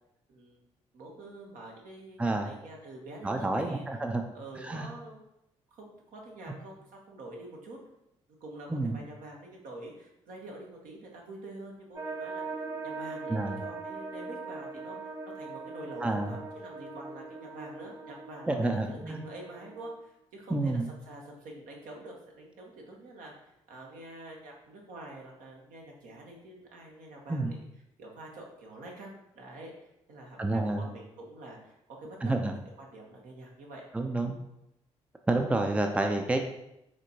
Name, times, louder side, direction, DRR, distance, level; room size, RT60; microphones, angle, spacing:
voice 1, 0.3-0.6 0.9-3.8 4.3-5.2 5.7-7.8 8.4-27.6 28.0-33.9, right 1 dB, 60° right, -1 dB, 1.0 m, -46 dB
voice 2, 3.2-4.2 4.6-4.9 8.7-8.9 13.3-13.6 16.0-16.3 18.5-19.2 20.5-20.9 27.3-27.5 30.4-30.9 32.2-32.5 33.9-34.4 35.3-36.4, right 2 dB, 10° right, 5 dB, 0.5 m, -29 dB
sound 1, 12.0-20.0, right 3 dB, 25° right, 1.1 m, -41 dB
5.0 x 3.5 x 2.8 m, 0.84 s
figure-of-eight pair, 40°, 15 cm